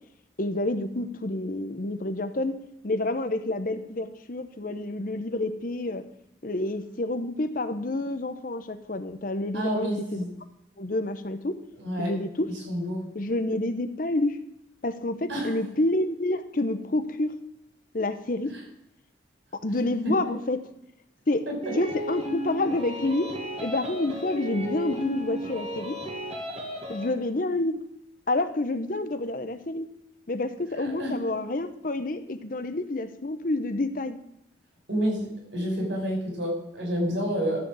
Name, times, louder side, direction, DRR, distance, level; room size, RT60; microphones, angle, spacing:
voice 1, 0.4-2.5 2.8-6.0 6.4-10.2 10.8-11.6 12.0-12.5 13.1-14.4 14.8-17.3 17.9-18.5 19.6-20.6 21.3-21.4 21.7-23.3 23.6-26.0 26.9-27.8 28.3-29.9 30.3-34.2, left 2 dB, 45° left, 10 dB, 0.8 m, -28 dB
voice 2, 9.5-10.3 11.8-12.1 12.7-13.0 15.3-15.5 30.8-31.3 34.9-35.2 35.5-37.6, equal, 85° right, 0 dB, 5.2 m, -28 dB
sound 1, 21.6-27.1, equal, 35° right, 2.1 m, -34 dB
13.5 x 5.1 x 7.6 m, 0.79 s
head